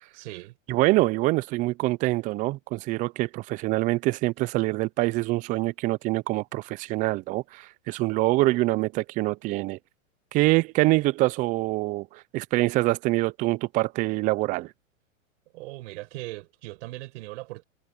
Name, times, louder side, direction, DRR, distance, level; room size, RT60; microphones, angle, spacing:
voice 1, 0.1-0.5 15.5-17.6, right 20 dB, 60° right, 5.1 m, -39 dB
voice 2, 0.7-9.8 10.3-14.7, right 20 dB, 20° right, 0.4 m, -25 dB
hypercardioid pair, 120°, 40 cm